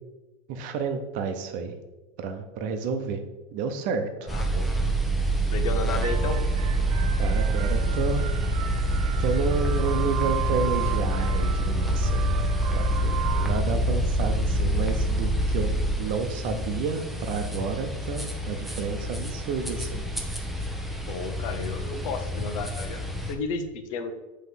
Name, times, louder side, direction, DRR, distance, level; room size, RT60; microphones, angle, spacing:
voice 1, 0.5-1.7 2.2-3.2 3.5-4.1 7.2-8.2 9.2-12.4 12.7-20.0, right 5 dB, 50° right, 7 dB, 0.8 m, -30 dB
voice 2, 4.3-4.7 5.5-6.4 21.1-24.1, left 4 dB, 75° left, 8 dB, 0.8 m, -32 dB
sound 1, 4.3-23.3, right 1 dB, ahead, 0.5 m, -26 dB
sound 2, 6.0-13.5, right 10 dB, 85° right, 0.6 m, -35 dB
5.8 x 3.2 x 5.5 m, 1.1 s
supercardioid pair, 140°, 17 cm